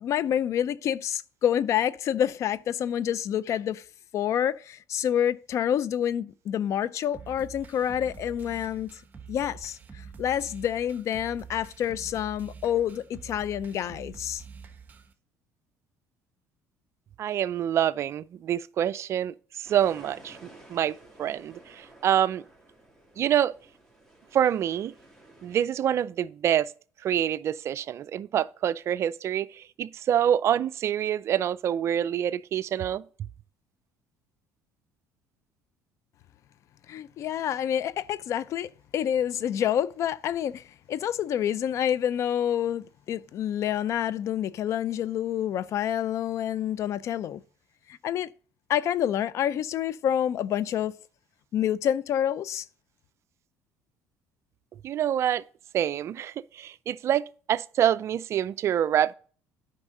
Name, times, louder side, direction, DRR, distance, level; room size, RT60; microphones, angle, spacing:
voice 1, 0.0-3.8 4.1-8.9 9.3-9.8 10.2-14.4 36.9-47.4 47.9-48.3 48.7-51.0 51.5-52.7, left 10 dB, 55° left, 0.4 m, -28 dB
sound 1, 7.1-15.1, right 6 dB, 30° right, 1.2 m, -46 dB
voice 2, 17.2-20.9 21.2-22.4 23.2-23.5 24.3-24.9 25.4-26.7 27.0-33.0 54.8-55.4 55.7-59.1, right 10 dB, 45° right, 0.4 m, -26 dB
sound 2, 19.6-25.6, right 2 dB, 10° left, 3.0 m, -53 dB
9.7 x 5.4 x 3.8 m
supercardioid pair, 100°, 6 cm